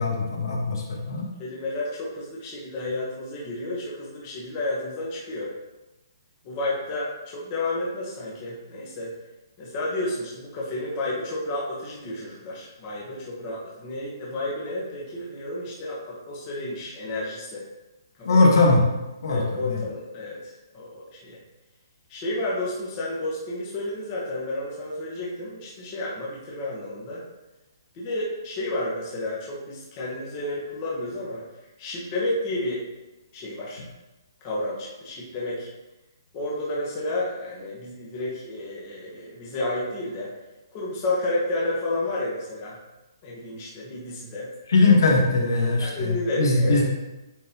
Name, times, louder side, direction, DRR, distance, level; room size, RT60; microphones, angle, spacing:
voice 1, 0.0-1.3 18.2-18.8 19.2-19.8 44.7-46.8, left 3 dB, 60° left, -1 dB, 1.4 m, -20 dB
voice 2, 1.4-5.5 6.4-9.1 9.6-17.6 18.2-18.4 19.3-21.4 22.1-27.2 27.9-31.4 31.8-32.8 33.3-33.8 34.4-35.7 36.3-40.3 40.7-42.8 43.2-44.5 45.8-46.8, left 2 dB, 20° left, -5 dB, 1.2 m, -31 dB
9.2 x 3.8 x 3.0 m, 1.0 s
hypercardioid pair, 170°, 2 cm